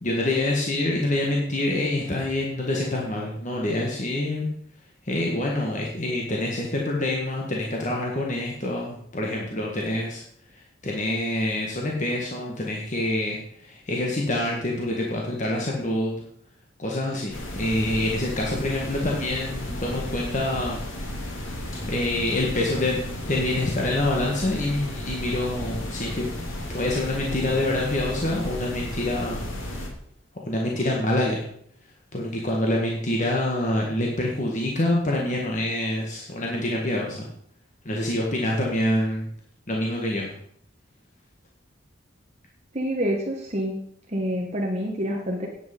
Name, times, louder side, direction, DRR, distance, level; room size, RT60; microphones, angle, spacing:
voice 1, 0.0-4.5 5.0-10.2 10.8-16.2 16.8-20.8 21.9-23.0 23.3-26.3 26.7-29.4 30.4-31.4 32.1-37.2 37.8-39.3 39.7-40.3, left 1 dB, 40° left, -2 dB, 1.7 m, -26 dB
sound 1, 17.3-29.9, left 1 dB, 85° left, 2.6 m, -34 dB
voice 2, 42.7-43.7 44.1-45.5, equal, 35° right, -1 dB, 1.5 m, -27 dB
10.0 x 8.7 x 5.3 m, 0.67 s
head